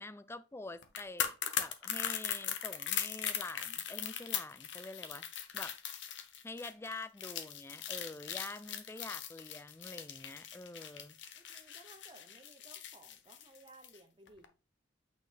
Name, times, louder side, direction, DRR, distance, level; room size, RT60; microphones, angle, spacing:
voice 1, 0.0-5.3 5.5-5.8 6.4-11.2, left 2 dB, 15° left, 0.4 m, -46 dB
sound 1, 0.8-14.0 14.3-14.4, left 9 dB, 70° left, 0.9 m, -39 dB
voice 2, 11.3-14.5, right 2 dB, 25° right, 0.7 m, -59 dB
8.4 x 4.3 x 3.3 m
head